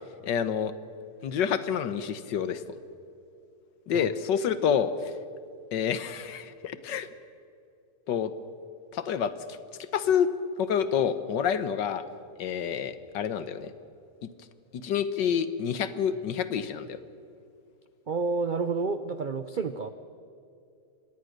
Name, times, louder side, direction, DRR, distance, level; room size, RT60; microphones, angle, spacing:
voice 1, 0.2-0.7 1.2-2.6 3.9-5.1 5.7-7.1 8.1-8.3 8.9-10.3 10.6-12.0 12.4-13.7 14.8-17.0, left 8 dB, 85° left, 13 dB, 1.7 m, -28 dB
voice 2, 18.1-19.9, right 4 dB, 75° right, 10 dB, 0.4 m, -29 dB
25.0 x 19.5 x 6.5 m, 2.6 s
omnidirectional pair, 1.9 m